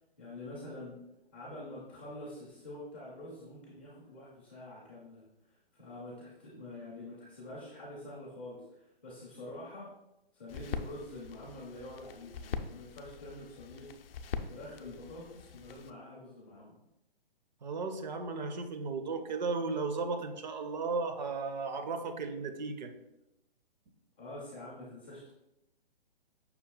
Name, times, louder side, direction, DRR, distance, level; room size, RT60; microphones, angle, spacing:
voice 1, 0.2-1.0 1.3-5.2 5.7-8.6 9.0-9.9 10.3-13.9 14.5-16.8 24.2-25.3, left 1 dB, 10° left, -6 dB, 0.4 m, -46 dB
sound 1, 10.5-15.9, left 6 dB, 70° left, 0.5 m, -43 dB
voice 2, 17.6-22.9, right 4 dB, 45° right, 7 dB, 0.5 m, -35 dB
5.7 x 2.3 x 3.7 m, 0.87 s
hypercardioid pair, 150°, 30 cm